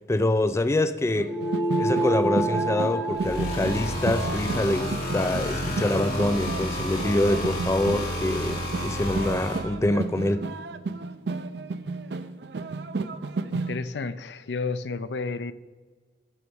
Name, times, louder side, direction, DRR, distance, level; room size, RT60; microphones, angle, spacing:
voice 1, 0.1-1.4 1.8-10.5, left 1 dB, 15° left, 0.3 m, -25 dB
sound 1, 1.2-13.8, right 3 dB, 70° right, 0.5 m, -33 dB
sound 2, 1.3-6.1, right 2 dB, 10° right, 1.1 m, -30 dB
sound 3, 3.1-9.6, equal, 60° left, 2.4 m, -31 dB
voice 2, 13.5-15.5, left 4 dB, 80° left, 0.5 m, -31 dB
12.0 x 4.7 x 6.3 m
head